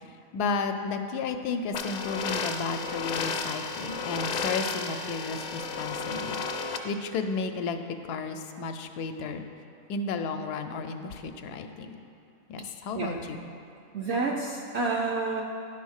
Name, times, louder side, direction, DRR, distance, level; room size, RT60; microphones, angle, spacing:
voice 1, 0.3-6.4 6.8-7.8 8.1-9.4 9.9-12.0 12.5-13.4, left 4 dB, 85° left, 7 dB, 1.1 m, -33 dB
sound 1, 1.7-6.8, left 5 dB, 60° left, 0.7 m, -33 dB
voice 2, 12.9-13.3 13.9-15.4, right 3 dB, 65° right, 0 dB, 0.6 m, -29 dB
10.0 x 4.2 x 6.3 m, 2.5 s
omnidirectional pair, 1.6 m